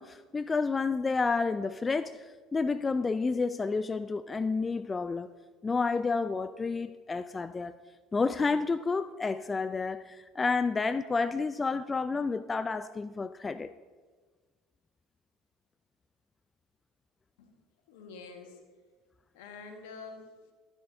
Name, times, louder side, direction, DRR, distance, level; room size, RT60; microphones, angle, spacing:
voice 1, 0.0-2.2 2.5-5.3 5.6-7.7 8.1-13.7, left 4 dB, 25° left, 13 dB, 0.4 m, -30 dB
voice 2, 17.9-18.7 19.3-20.5, left 4 dB, 80° left, 5 dB, 1.5 m, -47 dB
13.0 x 10.5 x 2.7 m, 1.4 s
hypercardioid pair, 70°, 0 cm